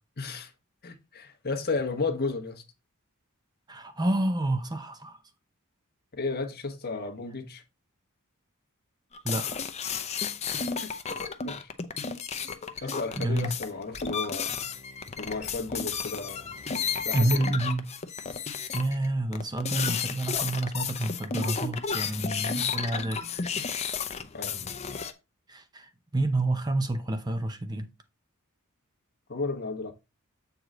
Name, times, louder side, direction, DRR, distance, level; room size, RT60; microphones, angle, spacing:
voice 1, 0.2-0.5 0.8-2.6 6.1-7.6 9.4-9.5 11.4-11.7 12.8-14.7 15.2-16.5 17.0-17.6 24.3-24.6 29.3-29.9, left 3 dB, 45° left, 1.2 m, -33 dB
voice 2, 3.7-5.2 9.2-9.6 12.8-13.5 17.1-17.9 18.7-23.2 25.5-27.9, right 2 dB, 20° right, 0.6 m, -29 dB
sound 1, 9.1-19.1 19.3-25.1, left 6 dB, 30° left, 0.7 m, -33 dB
7.8 x 4.8 x 3.8 m
head